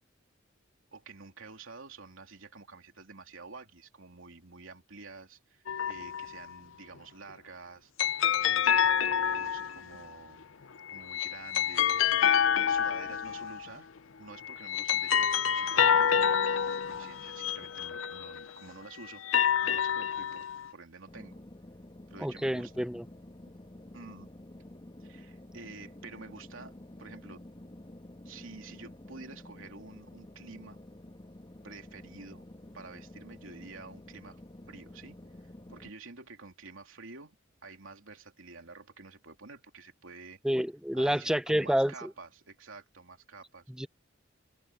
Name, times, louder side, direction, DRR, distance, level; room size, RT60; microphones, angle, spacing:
voice 1, 0.9-7.9 8.4-10.4 10.9-13.9 14.2-19.2 19.6-20.5 20.7-21.4 22.1-23.0 23.9-24.3 25.0-27.5 28.2-30.8 31.6-32.4 32.7-34.4 34.7-40.4 40.9-43.6, right 4 dB, 90° right, 3.0 m, -49 dB
sound 1, 5.7-6.4 8.0-10.0 10.9-13.7 14.4-18.5 19.1-20.7, left 8 dB, 80° left, 0.6 m, -27 dB
sound 2, 21.1-35.9, left 1 dB, 25° left, 1.4 m, -50 dB
voice 2, 22.2-23.1 40.4-42.1 43.8-43.9, equal, 5° right, 0.8 m, -28 dB
open air
head